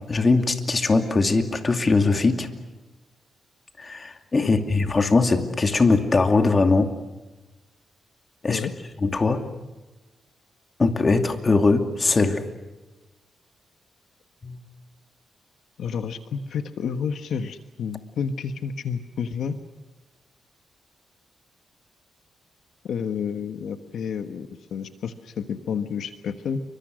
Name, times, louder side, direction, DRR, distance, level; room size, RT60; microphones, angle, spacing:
voice 1, 0.0-2.5 3.8-6.9 8.4-8.7 9.0-9.4 10.8-12.4 14.4-14.6, left 3 dB, 30° left, 6 dB, 2.6 m, -21 dB
voice 2, 4.4-4.8 8.5-8.7 15.8-19.6 22.8-26.6, left 6 dB, 75° left, 8 dB, 1.4 m, -30 dB
28.5 x 24.5 x 6.4 m, 1.2 s
cardioid pair, 105°, 0 cm